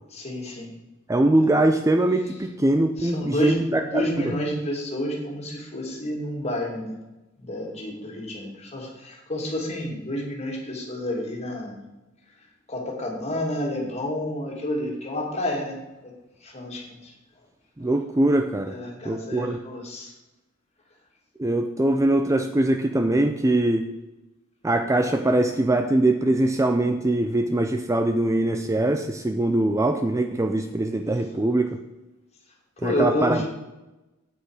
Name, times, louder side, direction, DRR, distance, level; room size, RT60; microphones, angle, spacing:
voice 1, 0.1-0.7 3.0-6.9 7.4-11.7 12.7-15.8 16.4-17.1 18.7-20.1 32.8-33.4, left 1 dB, 30° left, -1 dB, 2.5 m, -29 dB
voice 2, 1.1-4.3 17.8-18.8 19.0-19.6 21.4-23.9 24.6-31.8 32.8-33.4, right 1 dB, 15° right, 7 dB, 0.4 m, -22 dB
8.8 x 8.1 x 4.9 m, 1.0 s
head